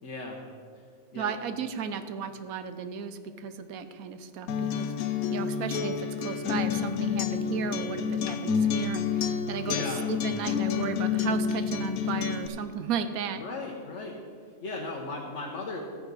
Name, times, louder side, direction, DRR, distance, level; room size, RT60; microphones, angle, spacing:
voice 1, 0.0-0.4 1.1-1.4 9.6-10.0 13.4-14.2 14.6-15.8, left 3 dB, 55° left, -1 dB, 1.3 m, -36 dB
voice 2, 1.1-13.4, right 7 dB, 75° right, 10 dB, 1.1 m, -35 dB
Acoustic guitar, 4.5-12.5, left 7 dB, 75° left, 1.1 m, -29 dB
13.5 x 9.6 x 4.0 m, 2.2 s
omnidirectional pair, 1.5 m